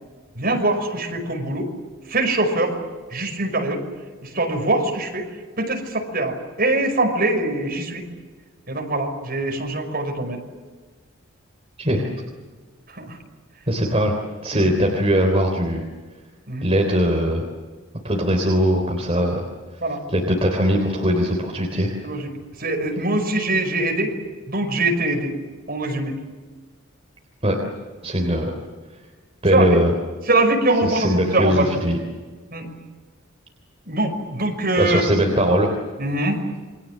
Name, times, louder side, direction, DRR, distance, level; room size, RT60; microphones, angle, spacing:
voice 1, 0.4-1.7 2.1-2.8 3.1-3.8 4.2-5.3 5.6-8.0 8.7-10.4 12.9-13.2 14.5-14.7 16.5-16.7 19.8-20.0 22.0-22.3 22.6-24.1 24.5-25.3 25.7-26.1 29.5-29.8 30.3-31.7 32.5-32.7 33.9-35.1 36.0-36.5, right 2 dB, 45° right, 3 dB, 5.5 m, -23 dB
voice 2, 11.8-12.1 13.7-14.2 14.4-15.8 16.6-17.4 18.0-19.4 20.1-21.9 27.4-27.6 28.0-28.5 29.4-29.9 30.8-32.0 34.8-35.7, equal, 30° right, 1 dB, 3.3 m, -20 dB
28.5 x 23.5 x 7.6 m, 1.4 s
head